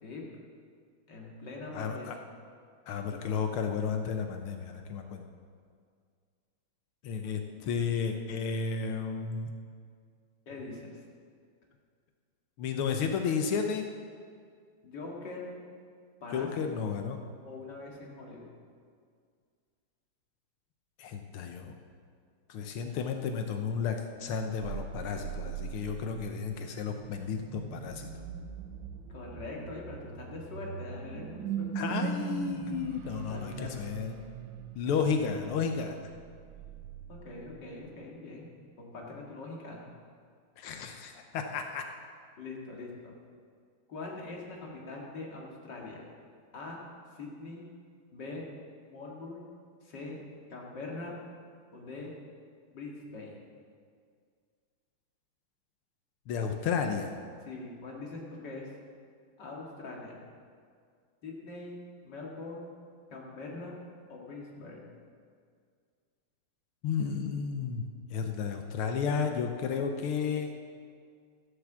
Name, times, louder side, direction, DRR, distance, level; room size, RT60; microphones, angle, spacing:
voice 1, 1.1-2.1 10.5-11.0 14.8-15.5 16.2-16.6 17.4-18.5 29.1-32.1 33.3-33.9 37.1-39.8 42.4-43.1 43.9-46.0 46.5-46.8 47.1-47.7 48.1-48.4 48.8-49.5 49.8-50.2 50.5-51.1 51.7-52.1 52.7-53.4 57.4-58.7 59.4-60.2 61.2-61.8 62.0-62.7 63.1-63.7 64.1-64.8, left 3 dB, 55° left, -2 dB, 2.7 m, -43 dB
voice 2, 1.7-2.2 2.9-5.2 7.0-9.5 12.6-13.9 16.3-17.2 21.0-21.7 22.5-28.1 31.8-34.1 34.8-36.0 40.6-41.9 56.3-57.1 66.8-70.5, left 6 dB, 85° left, 5 dB, 1.8 m, -32 dB
sound 1, 24.6-37.9, right 6 dB, 70° right, 1.4 m, -41 dB
15.0 x 7.2 x 7.3 m, 2.1 s
omnidirectional pair, 2.3 m